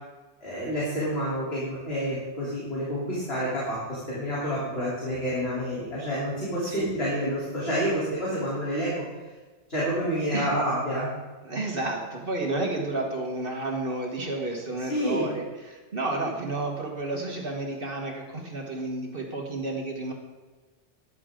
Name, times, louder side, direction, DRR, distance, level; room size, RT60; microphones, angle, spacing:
voice 1, 0.4-9.0 9.7-11.1 14.9-15.3, equal, 55° left, -9 dB, 3.8 m, -28 dB
voice 2, 11.4-20.1, right 2 dB, 50° right, 1 dB, 1.7 m, -31 dB
13.5 x 11.0 x 3.8 m, 1.3 s
omnidirectional pair, 1.2 m